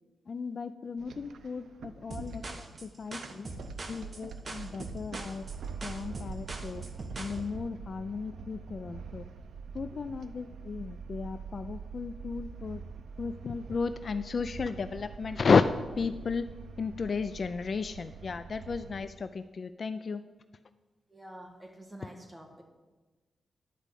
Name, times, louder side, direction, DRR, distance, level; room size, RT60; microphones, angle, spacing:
voice 1, 0.3-3.5 3.9-5.5 5.8-6.8 7.2-9.2 9.7-12.8 13.2-15.6 16.0-16.5 16.8-20.2, left 5 dB, 45° left, 11 dB, 0.3 m, -33 dB
sound 1, 1.0-19.1, right 6 dB, 85° right, 0.6 m, -45 dB
sound 2, 2.1-7.4, right 2 dB, 35° right, 1.1 m, -41 dB
voice 2, 18.9-19.2 21.1-22.6, right 1 dB, 10° right, 2 dB, 1.6 m, -48 dB
11.0 x 5.0 x 8.2 m, 1.2 s
wide cardioid pair, 150°, 0 cm